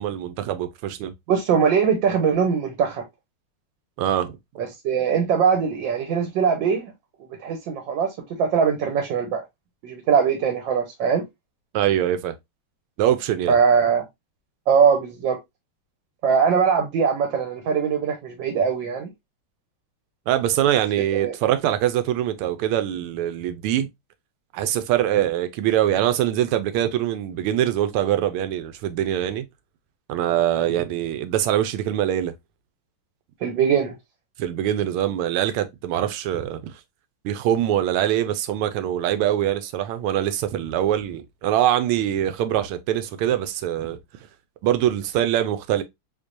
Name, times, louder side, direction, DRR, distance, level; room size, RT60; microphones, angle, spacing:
voice 1, 0.0-1.1 4.0-4.4 11.7-12.3 13.0-13.6 20.3-23.9 24.5-29.4 30.1-32.3 34.4-36.7 37.2-44.0 44.6-45.8, right 11 dB, 85° right, 1.5 m, -23 dB
voice 2, 1.3-3.0 4.6-6.9 7.4-9.4 9.8-11.2 13.5-14.0 14.7-15.4 16.2-19.1 21.1-21.3 30.6-30.8 33.4-33.9, right 6 dB, 65° right, 1.4 m, -21 dB
3.7 x 3.1 x 2.5 m
omnidirectional pair, 2.4 m